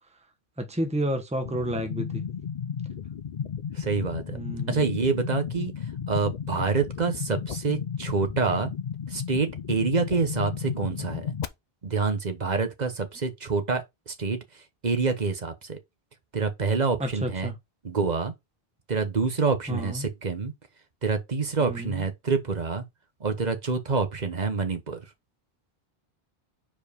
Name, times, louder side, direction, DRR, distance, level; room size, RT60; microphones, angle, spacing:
voice 1, 0.6-2.2 4.3-4.9 17.0-17.6 19.7-20.1 21.6-22.1, right 1 dB, 5° right, 1.0 m, -31 dB
sound 1, 1.5-11.5, left 7 dB, 50° left, 0.6 m, -34 dB
voice 2, 3.7-4.4 4.7-5.7 6.1-8.7 9.1-11.3 11.8-14.4 14.8-15.8 16.3-17.5 17.8-18.3 18.9-20.5 21.0-22.8 23.2-25.0, right 4 dB, 45° right, 1.2 m, -27 dB
4.9 x 4.6 x 5.2 m
omnidirectional pair, 1.0 m